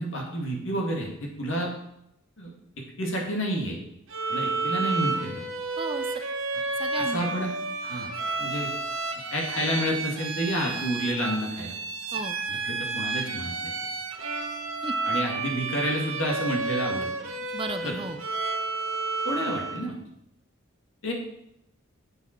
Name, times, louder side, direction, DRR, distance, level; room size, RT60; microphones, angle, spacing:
voice 1, 0.0-1.7 2.4-2.5 3.0-3.8 4.3-5.4 6.9-7.5 7.8-8.1 8.4-8.7 9.3-11.7 12.5-13.7 15.1-17.3 17.8-17.9 19.2-19.9 21.0-21.1, equal, 65° left, -1 dB, 2.1 m, -30 dB
Bowed string instrument, 4.1-19.9, right 3 dB, 65° right, 1.0 m, -31 dB
voice 2, 5.8-6.2 6.8-7.3 12.1-12.4 14.8-14.9 17.5-18.2, right 3 dB, 25° right, 9 dB, 0.5 m, -34 dB
7.7 x 7.2 x 4.4 m, 0.81 s
head